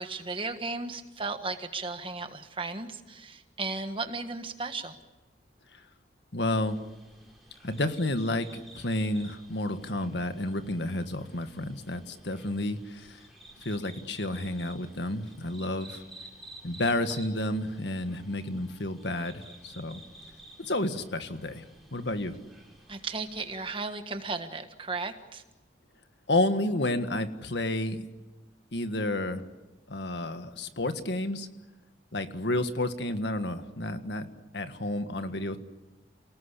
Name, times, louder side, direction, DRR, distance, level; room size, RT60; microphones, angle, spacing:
voice 1, 0.0-5.0 22.9-25.4, right 3 dB, 30° right, 8 dB, 1.5 m, -35 dB
voice 2, 6.3-6.8 7.6-13.2 13.6-16.0 16.6-20.0 20.6-21.6 21.9-22.4 26.3-28.0 28.7-29.4 29.9-31.5 32.1-34.3 34.5-35.6, left 1 dB, 70° left, 9 dB, 1.7 m, -30 dB
sound 1, 6.5-23.8, right 1 dB, ahead, 5.4 m, -52 dB
29.0 x 19.0 x 8.4 m, 1.1 s
head